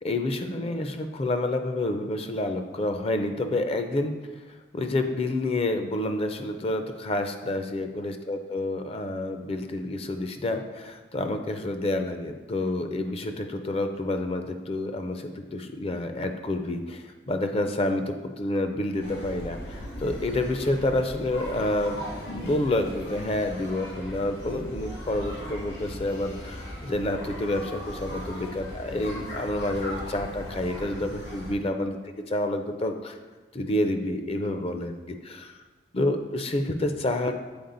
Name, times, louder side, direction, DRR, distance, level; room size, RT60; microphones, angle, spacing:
voice 1, 0.0-4.1 4.7-32.0 32.3-33.2 33.5-35.5 35.9-37.4, left 1 dB, 35° left, 6 dB, 0.5 m, -29 dB
sound 1, 19.0-31.5, equal, 75° left, 2.2 m, -38 dB
6.9 x 4.6 x 3.9 m, 1.3 s
head